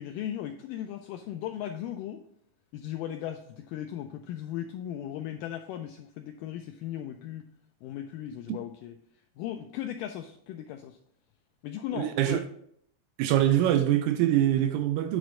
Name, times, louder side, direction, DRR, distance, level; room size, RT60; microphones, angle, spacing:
voice 1, 0.0-2.2 2.7-7.5 7.8-9.0 9.4-11.0 11.6-12.4, left 11 dB, 85° left, 1.9 m, -37 dB
voice 2, 11.9-12.4 13.2-15.2, right 12 dB, 80° right, 2.1 m, -24 dB
9.0 x 3.2 x 6.1 m
omnidirectional pair, 4.2 m